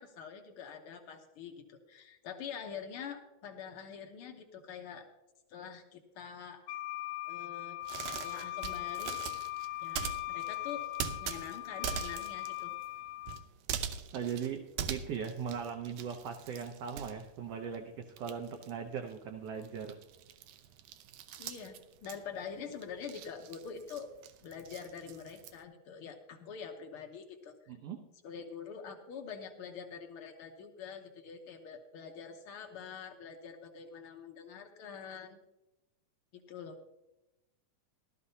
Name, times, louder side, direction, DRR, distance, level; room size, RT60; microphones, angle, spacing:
voice 1, 0.0-5.1 5.5-6.7 7.3-7.8 8.2-9.2 9.8-10.8 11.2-12.8 21.4-24.1 24.4-27.7 28.2-35.4 36.3-36.8, left 6 dB, 60° left, 4 dB, 1.5 m, -45 dB
Wind instrument woodwind instrument, 6.7-13.4, left 17 dB, 80° left, 1.7 m, -39 dB
sound 1, 7.8-17.8 18.1-25.6, right 9 dB, 85° right, 2.2 m, -42 dB
voice 2, 14.1-14.6 14.9-20.0 27.7-28.0, right 7 dB, 70° right, 4 dB, 1.6 m, -39 dB
16.5 x 12.5 x 2.8 m, 0.96 s
omnidirectional pair, 3.5 m